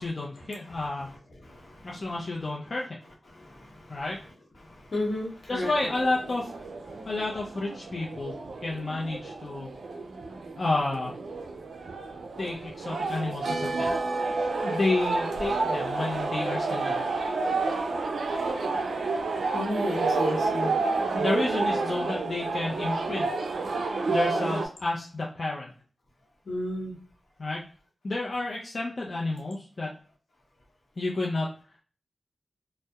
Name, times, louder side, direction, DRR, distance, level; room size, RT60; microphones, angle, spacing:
voice 1, 0.0-1.1 1.8-2.8 3.9-4.2 5.5-6.5 7.1-8.3 8.6-9.7 10.6-11.1 12.4-13.9 14.6-17.1 21.1-23.3 24.1-25.7 27.4-27.6 28.0-29.9 31.0-31.5, left 2 dB, 55° left, -3 dB, 0.4 m, -30 dB
voice 2, 0.7-2.2 3.3-4.0 4.6-5.7 6.9-7.1 19.5-20.7 26.5-26.9, left 1 dB, 75° left, -2 dB, 0.8 m, -34 dB
sound 1, 5.6-24.7, right 3 dB, 90° right, 0.3 m, -30 dB
2.7 x 2.0 x 2.2 m, 0.41 s
cardioid pair, 65°, 0 cm